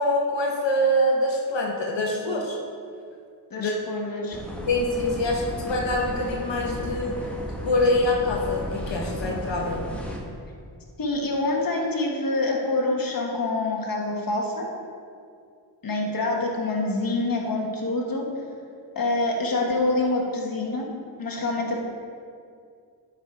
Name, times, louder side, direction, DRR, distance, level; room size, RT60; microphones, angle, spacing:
voice 1, 0.0-2.6 3.6-3.7 4.7-7.2 7.6-9.9, left 1 dB, 85° left, 0 dB, 1.1 m, -24 dB
voice 2, 3.5-4.4 11.0-14.7 15.8-18.3 18.9-20.9 21.2-21.8, left 2 dB, 50° left, -1 dB, 1.3 m, -26 dB
sound 1, 4.3-10.2, equal, 5° left, 1.0 m, -34 dB
11.5 x 4.9 x 4.8 m, 2.3 s
wide cardioid pair, 140°, 43 cm